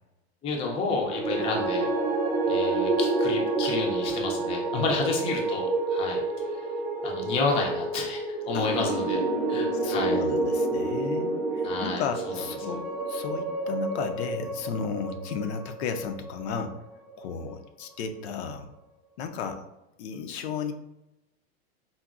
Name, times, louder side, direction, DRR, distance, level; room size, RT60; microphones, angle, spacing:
voice 1, 0.4-1.9 2.5-6.2 7.0-9.2 9.5-10.2 11.6-12.0, left 3 dB, 20° left, 0 dB, 0.4 m, -30 dB
sound 1, 1.0-17.3, right 2 dB, 30° right, 0.6 m, -29 dB
voice 2, 9.7-16.8 17.2-18.7 19.2-19.6 20.0-20.7, left 6 dB, 80° left, 6 dB, 0.5 m, -34 dB
3.9 x 2.0 x 2.3 m, 0.92 s
supercardioid pair, 135°, 32 cm